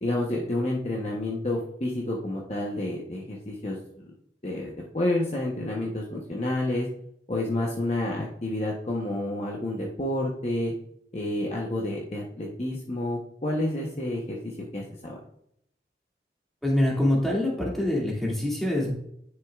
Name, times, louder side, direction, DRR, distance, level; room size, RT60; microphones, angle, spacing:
voice 1, 0.0-4.0 4.4-6.9 7.3-10.7 11.1-15.1, left 1 dB, 35° left, -2 dB, 0.9 m, -29 dB
voice 2, 16.6-18.9, left 1 dB, ahead, -4 dB, 2.3 m, -25 dB
10.5 x 6.4 x 2.4 m, 0.72 s
head